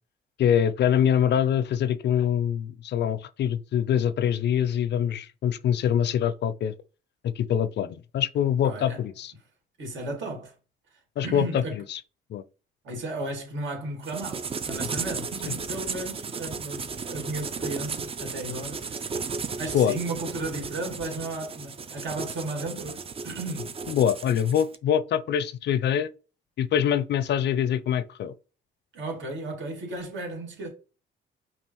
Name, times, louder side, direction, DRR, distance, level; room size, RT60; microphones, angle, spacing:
voice 1, 0.4-6.7 7.4-9.3 11.2-12.0 12.3-12.4 15.5-15.6 19.7-19.9 23.9-26.1 26.6-28.3, left 9 dB, 60° left, 0.5 m, -24 dB
voice 2, 8.6-9.0 9.8-10.5 11.2-11.8 12.8-19.2 19.6-23.8 28.9-30.7, right 2 dB, 70° right, 2.2 m, -34 dB
sound 1, 14.0-24.8, right 5 dB, 30° right, 0.5 m, -35 dB
5.4 x 2.4 x 3.0 m
cardioid pair, 90°, 20 cm